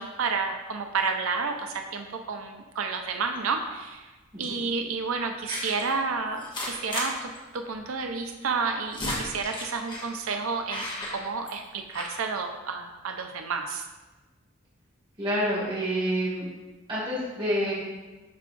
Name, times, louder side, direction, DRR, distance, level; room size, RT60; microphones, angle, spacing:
voice 1, 0.0-4.0 4.4-13.8, right 4 dB, 80° right, 4 dB, 0.6 m, -30 dB
sound 1, 3.3-3.7 4.4-4.6 5.5-5.9 6.4-7.1 7.3-7.4 7.7-7.8 8.5-10.1 10.7-11.7 11.9-12.1, left 1 dB, 25° left, 1.3 m, -35 dB
voice 2, 15.2-16.5 16.9-17.7, equal, 25° right, -9 dB, 2.2 m, -28 dB
11.5 x 4.6 x 2.5 m, 1.2 s
head